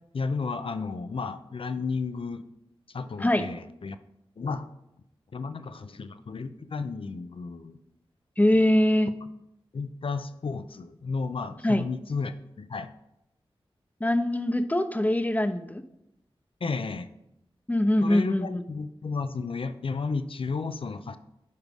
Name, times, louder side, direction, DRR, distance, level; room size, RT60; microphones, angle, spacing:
voice 1, 0.1-2.4 2.9-4.0 4.4-4.7 5.3-7.8 9.7-12.9 16.6-17.1 18.0-21.2, left 4 dB, 65° left, 11 dB, 0.6 m, -33 dB
voice 2, 8.4-9.1 11.6-11.8 14.0-15.8 17.7-18.6, left 1 dB, 15° left, 10 dB, 0.7 m, -23 dB
10.5 x 4.7 x 3.6 m, 0.83 s
cardioid pair, 40°, 10 cm